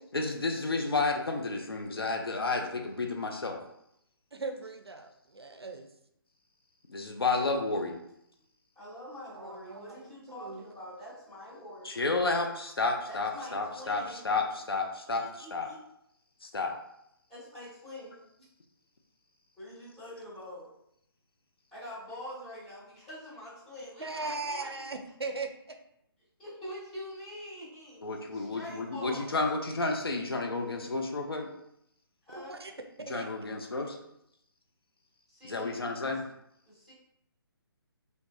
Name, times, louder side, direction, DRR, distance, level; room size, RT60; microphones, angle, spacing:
voice 1, 0.1-3.6 6.9-8.0 11.8-15.7 16.4-16.7 28.0-31.5 33.1-34.0 35.4-36.2, left 3 dB, 70° left, 2 dB, 0.5 m, -31 dB
voice 2, 4.3-5.9 9.3-10.6 24.0-25.8 32.3-32.7 33.1-33.3, right 3 dB, 80° right, 5 dB, 0.4 m, -39 dB
voice 3, 8.7-12.0 13.1-14.2 15.1-15.8 17.3-18.5 19.6-20.7 21.7-24.7 26.4-28.0 28.3-29.3 32.3-32.6 35.3-36.2 36.6-36.9, left 1 dB, ahead, -15 dB, 1.4 m, -45 dB
3.2 x 2.0 x 2.5 m, 0.76 s
figure-of-eight pair, 140°, 13 cm